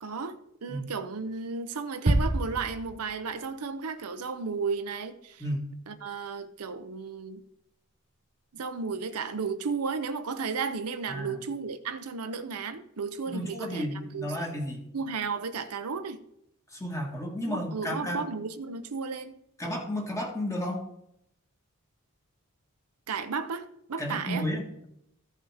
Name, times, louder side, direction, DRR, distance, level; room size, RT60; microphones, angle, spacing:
voice 1, 0.0-5.4 5.9-7.4 8.5-14.3 14.9-16.2 17.5-19.3 23.1-24.5, right 5 dB, 85° right, 0.7 m, -34 dB
sound 1, 2.1-3.5, right 1 dB, 30° right, 0.6 m, -27 dB
voice 2, 11.1-11.4 13.3-14.8 16.7-18.2 19.6-20.8 24.0-24.9, equal, 15° left, 1.7 m, -32 dB
14.5 x 5.6 x 3.5 m
head